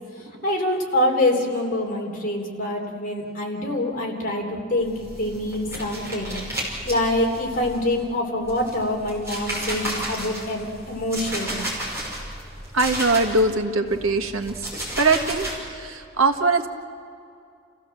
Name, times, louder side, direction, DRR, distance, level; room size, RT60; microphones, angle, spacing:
voice 1, 0.4-6.4 6.8-11.6, left 1 dB, 40° left, 0 dB, 3.3 m, -25 dB
sound 1, 4.8-8.1 8.4-13.5 13.9-15.6, right 1 dB, 15° right, 5.7 m, -33 dB
voice 2, 12.7-14.5 15.0-16.7, right 3 dB, 85° right, 6 dB, 1.6 m, -21 dB
29.5 x 16.0 x 7.7 m, 2.4 s
head